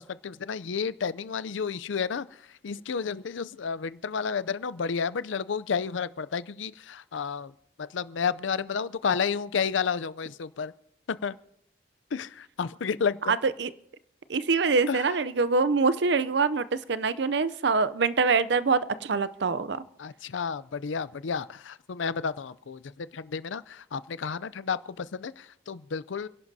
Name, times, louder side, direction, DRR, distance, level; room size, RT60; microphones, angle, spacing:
voice 1, 0.0-2.3 2.6-7.5 7.8-10.7 11.1-11.4 12.1-13.4 14.9-15.1 20.0-26.3, left 6 dB, 80° left, 17 dB, 0.5 m, -31 dB
voice 2, 13.3-13.7 14.3-19.8, right 4 dB, 65° right, 16 dB, 0.5 m, -25 dB
29.5 x 11.0 x 2.7 m, 0.75 s
head